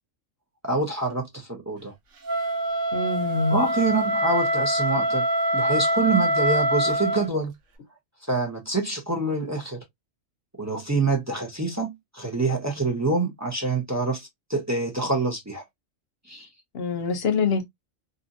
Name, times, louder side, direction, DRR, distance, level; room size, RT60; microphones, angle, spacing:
voice 1, 0.6-1.9 3.5-5.3 5.5-7.5 8.3-9.8 10.6-15.6 16.3-16.5, right 3 dB, 20° right, 0.5 m, -26 dB
Wind instrument woodwind instrument, 2.2-7.3, right 1 dB, 70° right, 1.1 m, -24 dB
voice 2, 2.9-3.6 16.7-17.6, left 4 dB, 55° left, 0.8 m, -25 dB
2.6 x 2.6 x 2.5 m
omnidirectional pair, 1.4 m